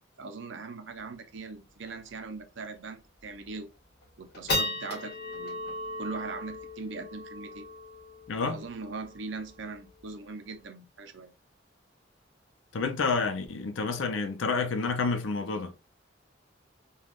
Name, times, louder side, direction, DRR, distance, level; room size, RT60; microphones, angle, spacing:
voice 1, 0.2-3.7 4.2-7.7 8.4-11.3, right 4 dB, 70° right, 0.5 m, -40 dB
sound 1, 1.0-1.1 1.3-1.4 1.8-2.1 2.6-2.7 3.2-3.6 4.0-10.6, left 1 dB, 55° left, 1.3 m, -37 dB
voice 2, 8.3-8.6 12.7-15.7, left 4 dB, 90° left, 0.5 m, -29 dB
3.4 x 2.3 x 2.4 m
head